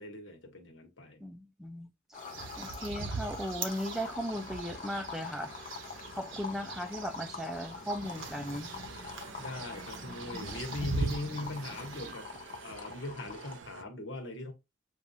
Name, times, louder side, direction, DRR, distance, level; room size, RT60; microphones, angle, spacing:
voice 1, 0.0-1.2 9.4-12.3 12.6-14.5, left 1 dB, 80° left, 1.2 m, -40 dB
voice 2, 1.2-1.9 2.6-5.5 6.1-8.7, equal, ahead, 0.4 m, -37 dB
sound 1, 2.1-13.6, left 5 dB, 40° left, 0.7 m, -45 dB
sound 2, 2.2-12.1, right 3 dB, 85° right, 1.1 m, -41 dB
sound 3, 8.0-13.8, right 6 dB, 65° right, 0.4 m, -50 dB
7.2 x 2.4 x 2.8 m
head